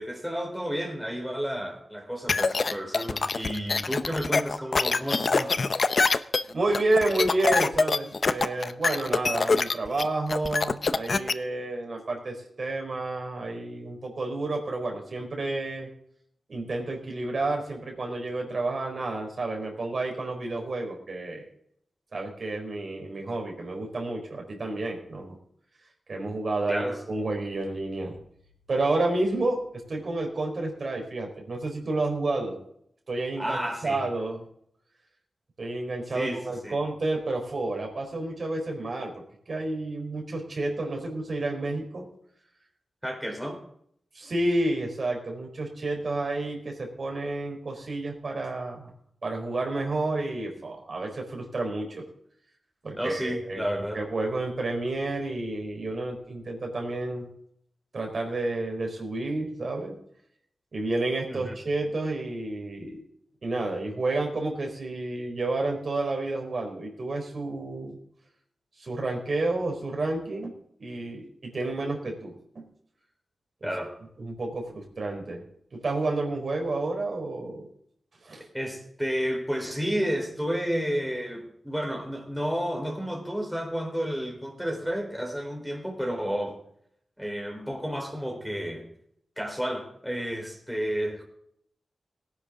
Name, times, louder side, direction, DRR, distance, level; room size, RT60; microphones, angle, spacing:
voice 1, 0.0-5.6 26.7-27.0 33.4-34.0 36.1-36.8 43.0-43.6 53.0-54.0 61.3-61.5 73.6-74.0 78.4-86.6 87.2-88.9 89.4-91.2, equal, ahead, 0 dB, 4.2 m, -31 dB
sound 1, 2.3-11.3, left 4 dB, 55° left, 0.7 m, -24 dB
voice 2, 6.5-15.9 16.5-21.5 22.1-25.4 26.1-28.2 28.7-32.6 33.1-34.4 35.6-42.0 44.1-48.9 49.2-52.0 52.8-53.6 53.9-57.3 57.9-59.9 60.7-63.0 63.4-68.0 68.8-70.5 70.8-72.7 73.6-73.7 74.2-75.4 75.7-77.7 78.2-78.4, right 2 dB, 60° right, 1 dB, 4.4 m, -30 dB
18.0 x 10.5 x 3.8 m, 0.69 s
cardioid pair, 70°, 0 cm